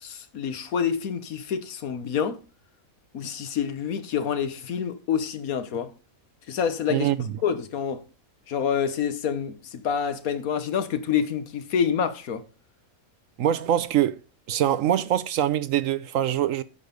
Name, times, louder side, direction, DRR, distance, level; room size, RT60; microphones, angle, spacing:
voice 1, 0.0-2.4 3.1-5.9 6.5-7.1 7.4-8.0 8.5-12.4, left 7 dB, 80° left, 1.5 m, -27 dB
voice 2, 6.9-7.4 13.4-14.2 14.5-16.6, right 11 dB, 70° right, 1.0 m, -24 dB
9.7 x 6.3 x 5.2 m
omnidirectional pair, 1.5 m